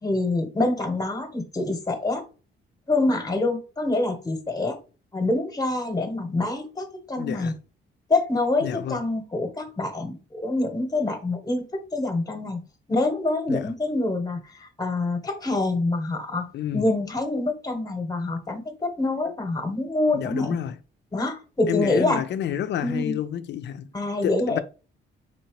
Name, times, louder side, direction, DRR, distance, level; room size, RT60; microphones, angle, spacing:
voice 1, 0.0-2.3 2.9-4.8 5.1-7.5 8.1-12.6 12.9-20.6 21.1-22.2 22.8-23.2 23.9-24.6, left 2 dB, 20° left, 0.9 m, -26 dB
voice 2, 7.2-7.5 8.6-9.0 13.5-13.7 16.5-16.8 20.1-20.8 21.7-23.9 24.2-24.6, left 10 dB, 60° left, 0.4 m, -29 dB
4.2 x 2.8 x 2.9 m
cardioid pair, 90°, 20 cm